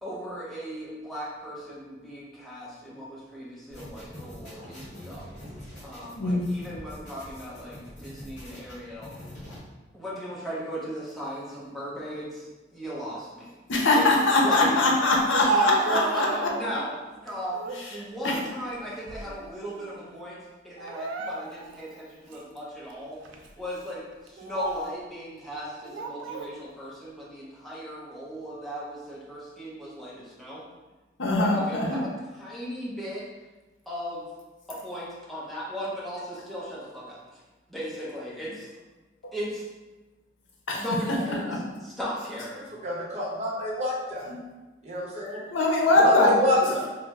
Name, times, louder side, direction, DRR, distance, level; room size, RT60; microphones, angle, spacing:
voice 1, 0.0-5.4 5.8-9.1 9.9-13.6 13.9-14.1 14.4-14.8 15.5-16.9 17.2-20.4 20.6-30.6 31.3-32.1 32.4-33.2 33.9-34.2 34.7-37.4 37.7-38.7 39.3-39.6 40.8-41.5 41.8-42.7, equal, ahead, -8 dB, 0.7 m, -36 dB
sound 1, 3.7-9.6, left 1 dB, 40° left, 1.2 m, -44 dB
voice 2, 13.7-16.5 17.8-17.9 18.2-18.4 31.2-32.0 40.7-40.8 41.5-41.6 44.3-44.4 45.5-46.3, left 2 dB, 80° left, -1 dB, 0.6 m, -22 dB
Speech, 15.1-16.8 17.3-17.8 18.3-19.5 19.8-20.0 20.8-21.8 22.3-22.4 23.2-23.5 24.3-25.0 25.8-26.5, right 3 dB, 85° right, 0.3 m, -32 dB
voice 3, 42.8-44.3 44.8-45.4 46.0-46.9, left 1 dB, 35° right, -6 dB, 0.8 m, -27 dB
3.1 x 2.0 x 3.5 m, 1.2 s
head